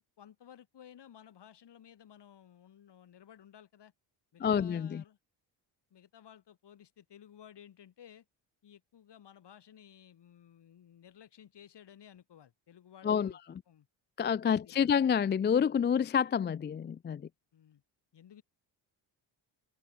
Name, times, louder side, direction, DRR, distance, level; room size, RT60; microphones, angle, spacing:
voice 1, 0.0-3.9 4.3-5.2 5.9-8.2 8.6-13.4 13.7-13.9 14.5-14.9 17.5-17.8 18.1-18.4, left 9 dB, 60° left, 4.6 m, -56 dB
voice 2, 4.4-5.0 13.0-13.3 14.2-17.2, left 7 dB, 25° left, 0.4 m, -28 dB
cardioid pair, 75°, 46 cm